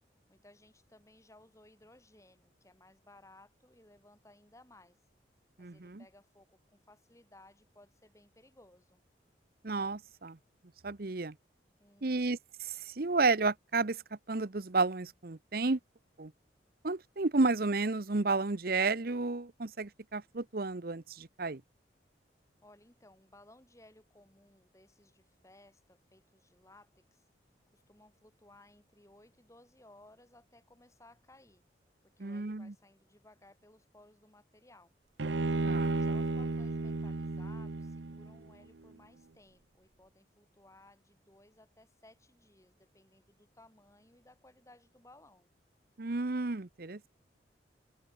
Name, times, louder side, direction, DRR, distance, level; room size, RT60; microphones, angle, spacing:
voice 1, 0.3-5.0 5.6-9.0 11.8-12.2 22.6-27.3 27.7-31.6 32.0-34.9 36.0-45.5, left 1 dB, 15° left, 3.3 m, -60 dB
voice 2, 5.6-6.0 9.6-10.4 10.8-11.3 12.0-14.0 14.3-15.8 16.2-16.3 16.8-21.6 32.2-32.7 35.6-36.0 46.0-47.1, right 3 dB, 55° right, 0.9 m, -32 dB
Bowed string instrument, 35.2-38.5, right 3 dB, 80° right, 0.9 m, -33 dB
head